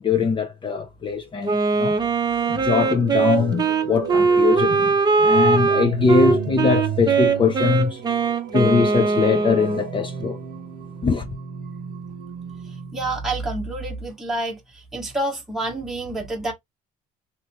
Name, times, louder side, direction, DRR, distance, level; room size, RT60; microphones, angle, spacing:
voice 1, 0.0-2.0 2.5-8.0 8.5-10.4 11.0-11.3, left 5 dB, 30° left, 0.5 m, -22 dB
Wind instrument woodwind instrument, 1.4-9.9, right 4 dB, 25° right, 0.7 m, -20 dB
sound 1, 2.1-14.0, right 9 dB, 80° right, 0.7 m, -35 dB
voice 2, 12.9-16.5, right 2 dB, ahead, 1.0 m, -28 dB
2.9 x 2.4 x 3.3 m
cardioid pair, 110°, 17 cm